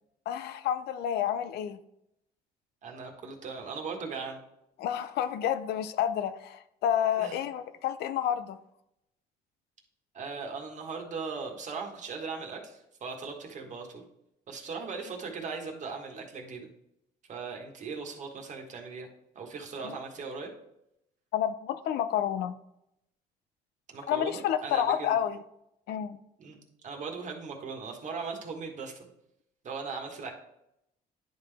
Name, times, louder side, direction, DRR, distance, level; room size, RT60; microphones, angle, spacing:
voice 1, 0.3-1.8 4.8-8.6 19.8-20.0 21.3-22.5 24.1-25.4 25.9-26.2, left 10 dB, 75° left, 12 dB, 0.5 m, -29 dB
voice 2, 2.8-4.4 7.2-7.4 10.1-14.0 14.5-16.7 17.3-19.1 19.3-20.5 23.9-25.1 26.4-26.6 26.8-29.1 29.6-30.3, right 4 dB, 45° right, 1 dB, 1.5 m, -38 dB
10.0 x 3.7 x 3.4 m, 0.82 s
cardioid pair, 110°, 17 cm